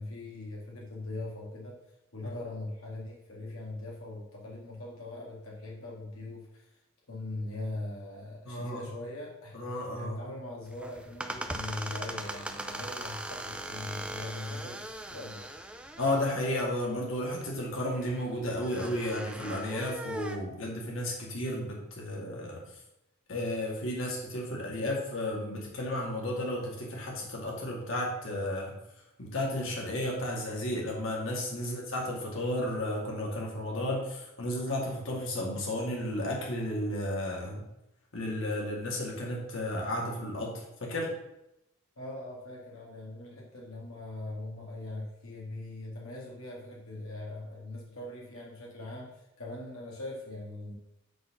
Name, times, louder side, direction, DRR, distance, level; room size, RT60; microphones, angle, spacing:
voice 1, 0.0-1.8 2.1-6.8 7.1-15.5 15.8-16.0 31.6-31.8 42.0-50.7, left 2 dB, 90° left, -3 dB, 2.0 m, -41 dB
voice 2, 8.5-8.8 9.5-10.3 16.0-22.8 23.3-28.7 29.2-37.6 38.1-41.1, left 1 dB, 65° left, -2 dB, 2.2 m, -33 dB
sound 1, 10.7-20.4, right 1 dB, 5° right, 0.6 m, -40 dB
9.2 x 4.1 x 6.0 m, 0.88 s
head